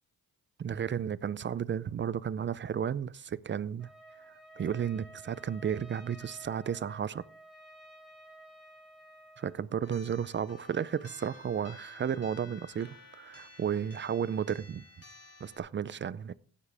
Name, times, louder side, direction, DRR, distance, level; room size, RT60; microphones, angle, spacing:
voice 1, 0.6-3.9 4.6-7.2 9.4-14.8 15.4-16.3, right 8 dB, 30° right, 0.4 m, -33 dB
Trumpet, 3.8-9.7, right 1 dB, ahead, 3.5 m, -53 dB
sound 1, 9.8-15.6, left 3 dB, 40° left, 3.4 m, -53 dB
16.0 x 7.4 x 3.4 m
cardioid pair, 125°, 37 cm